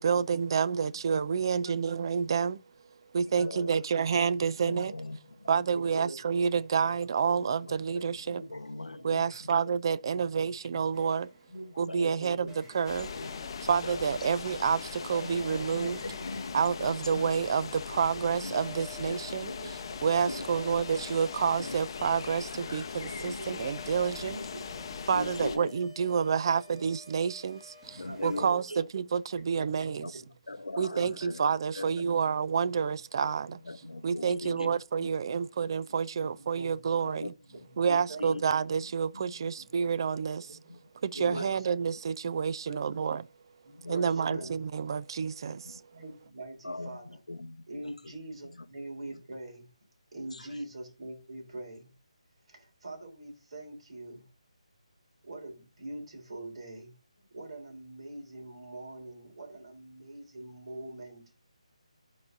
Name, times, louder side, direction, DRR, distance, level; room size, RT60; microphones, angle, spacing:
voice 1, 0.0-2.6 3.1-4.9 5.5-8.4 9.0-11.3 11.8-13.1 13.7-16.2 16.5-19.5 20.0-24.4 25.1-30.1 30.8-33.6 34.0-37.3 37.8-40.6 41.0-43.2 43.9-45.8, right 6 dB, 40° right, 0.4 m, -29 dB
voice 2, 3.2-3.8 5.2-5.3 5.9-6.2 6.8-6.9 7.6-9.5 11.5-12.6 14.2-14.3 19.5-19.7 23.2-23.3 23.6-23.7 24.0-24.1 24.5-25.7 27.9-28.8 29.6-30.3 30.9-31.1 33.5-33.6 33.9-34.0 34.2-34.7 36.1-36.8 37.1-37.7 38.1-38.3 39.3-39.7 40.5-41.5 42.2-43.0 43.7-45.0 45.9-47.2 47.7-49.7 50.1-51.9 52.5-54.2 55.2-61.5, right 2 dB, 55° right, 3.4 m, -45 dB
voice 3, 4.6-5.5 6.0-6.1 7.4-9.7 11.9-12.5 13.1-13.5 13.8-14.3 15.0-17.4 18.4-18.6 19.0-19.6 19.9-20.0 20.2-20.6 21.6-21.8 23.0-23.7 24.4-24.5 25.1-25.8 27.9-28.8 30.0-30.1 30.5-32.1 32.6-32.7 33.6-34.7 35.0-35.1 37.0-37.3 37.9-38.4 39.1-39.3 40.7-40.8 41.2-41.6 43.8-44.5 45.5-45.8 46.6-47.9 48.6-48.7 50.3-50.6, left 2 dB, 90° left, 0.6 m, -41 dB
sound 1, 10.9-11.8 12.4-17.8 18.1-28.5, left 4 dB, 10° right, 1.6 m, -53 dB
sound 2, 12.9-25.6, left 6 dB, 40° left, 0.7 m, -40 dB
12.5 x 4.8 x 2.6 m
figure-of-eight pair, 155°, 4 cm